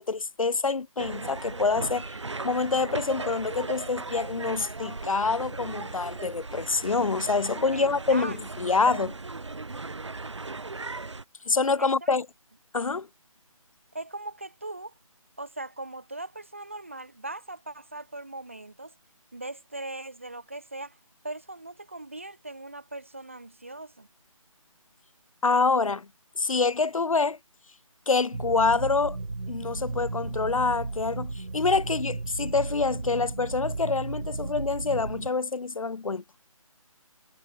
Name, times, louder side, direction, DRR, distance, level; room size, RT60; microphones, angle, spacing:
voice 1, 0.0-2.2 2.4-9.1 11.5-12.3 12.7-13.1 25.4-26.1 26.4-27.4 28.1-29.2 29.5-36.2, left 4 dB, 70° left, 0.8 m, -26 dB
sound 1, 1.0-11.2, right 3 dB, 55° right, 3.2 m, -37 dB
voice 2, 7.7-8.7 11.8-12.2 13.9-14.9 15.4-18.9 19.3-21.0 21.2-24.1, right 2 dB, 20° right, 0.8 m, -40 dB
sound 2, 28.3-35.3, right 3 dB, 85° right, 4.9 m, -34 dB
figure-of-eight pair, 180°, 18 cm